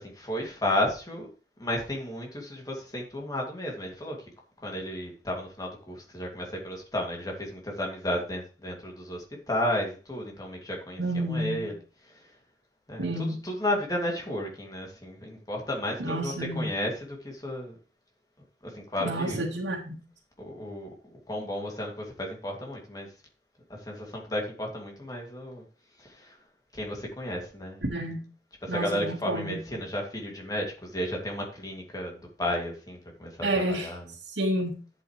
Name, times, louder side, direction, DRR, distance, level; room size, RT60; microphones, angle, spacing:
voice 1, 0.0-1.3 1.6-4.2 4.6-11.8 12.9-17.7 18.6-19.4 20.4-23.1 23.9-25.6 26.0-26.3 26.7-27.9 28.6-34.0, left 1 dB, 20° left, 2.6 m, -33 dB
voice 2, 11.0-11.7 13.0-13.4 16.0-16.7 19.0-20.0 27.8-28.2 28.7-29.6 33.4-33.9 34.3-34.7, right 1 dB, 90° right, 1.8 m, -30 dB
11.0 x 8.0 x 3.3 m
head